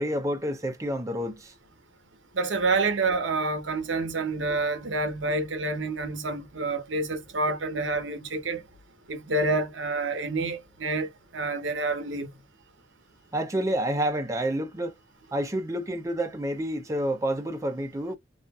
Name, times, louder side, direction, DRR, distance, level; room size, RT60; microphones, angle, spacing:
voice 1, 0.0-1.5 13.3-14.9 15.3-18.2, right 1 dB, 15° right, 0.5 m, -29 dB
voice 2, 2.3-8.6 9.1-12.3, right 3 dB, 85° right, 0.8 m, -28 dB
2.6 x 2.4 x 2.3 m
head